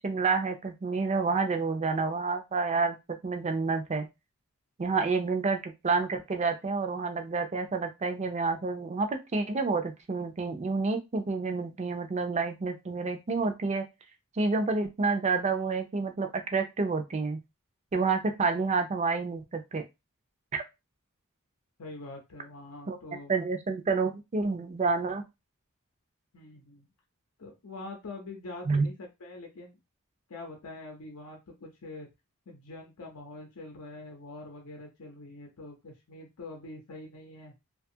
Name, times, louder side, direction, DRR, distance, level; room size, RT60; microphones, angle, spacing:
voice 1, 0.0-3.0 3.2-4.1 4.8-13.8 14.4-17.4 17.9-19.8 20.5-20.6 22.9-23.0 23.3-25.2 28.7-28.9, right 4 dB, 30° right, 7 dB, 0.4 m, -29 dB
voice 2, 21.8-23.3 26.3-26.9 27.4-28.9 29.2-29.8 30.3-32.1 32.5-37.5, left 2 dB, 80° left, 1 dB, 0.7 m, -44 dB
2.6 x 2.3 x 2.7 m, 0.23 s
head